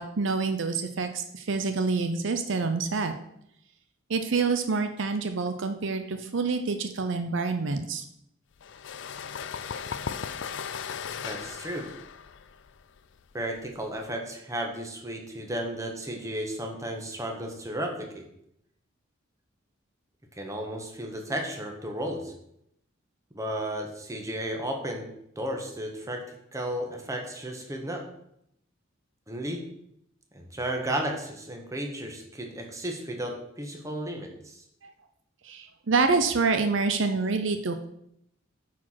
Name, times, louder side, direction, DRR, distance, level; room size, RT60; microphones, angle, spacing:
voice 1, 0.0-3.1 4.1-8.0 35.4-37.8, right 4 dB, 65° right, 8 dB, 0.6 m, -27 dB
sound 1, 8.6-14.1, left 7 dB, 70° left, 0.5 m, -37 dB
voice 2, 11.2-11.9 13.3-18.2 20.4-22.3 23.3-25.1 25.3-26.2 26.5-28.0 29.3-29.6 30.3-34.6, right 1 dB, 15° right, 2 dB, 1.5 m, -33 dB
9.1 x 4.9 x 5.8 m, 0.76 s
head